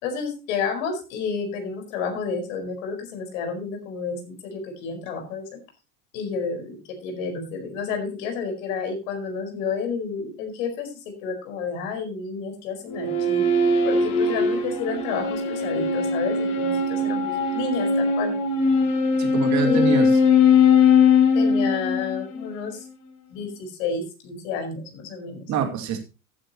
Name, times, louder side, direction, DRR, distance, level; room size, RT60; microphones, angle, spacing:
voice 1, 0.0-5.5 6.1-13.4 13.8-18.3 19.6-20.1 21.3-22.8 23.3-25.5, left 5 dB, 60° left, 5 dB, 4.8 m, -30 dB
sound 1, 12.9-22.5, left 4 dB, 45° left, 3.7 m, -20 dB
voice 2, 19.2-20.1 25.5-26.0, right 7 dB, 40° right, 6 dB, 2.5 m, -25 dB
14.5 x 9.7 x 3.0 m, 0.29 s
hypercardioid pair, 85°, 43 cm